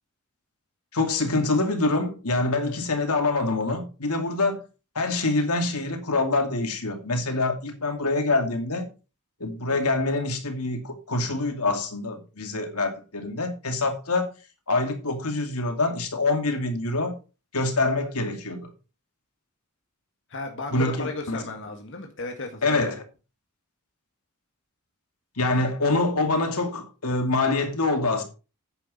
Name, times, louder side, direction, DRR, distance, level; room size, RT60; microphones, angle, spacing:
voice 1, 0.9-4.6 4.9-8.9 9.4-14.3 14.7-17.1 17.5-18.7 20.7-21.4 22.6-23.0 25.4-28.2, left 2 dB, 80° left, 2.4 m, -25 dB
voice 2, 20.3-23.0, left 3 dB, 60° left, 1.8 m, -35 dB
9.9 x 9.4 x 4.2 m
head